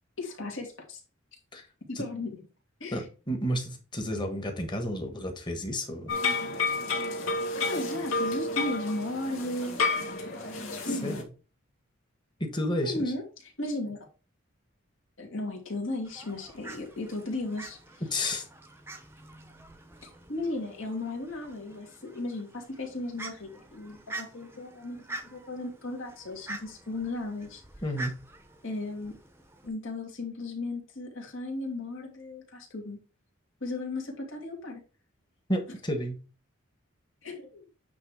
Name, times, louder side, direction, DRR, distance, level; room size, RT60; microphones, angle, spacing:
voice 1, 0.2-1.0 1.9-2.4 2.8-3.1 7.5-10.5 10.8-11.2 12.8-14.0 15.2-18.0 20.0-27.6 28.6-29.1 29.6-33.0 33.6-34.8 37.2-37.7, left 2 dB, 75° left, 2.4 m, -36 dB
voice 2, 2.9-6.1 11.0-11.2 12.4-12.9 18.1-18.4 27.8-28.2 35.5-36.2, equal, 20° left, 1.3 m, -31 dB
sound 1, 6.1-11.2, left 3 dB, 90° left, 1.8 m, -30 dB
Fowl, 16.0-29.7, right 2 dB, 10° right, 0.8 m, -46 dB
9.3 x 3.2 x 4.8 m
head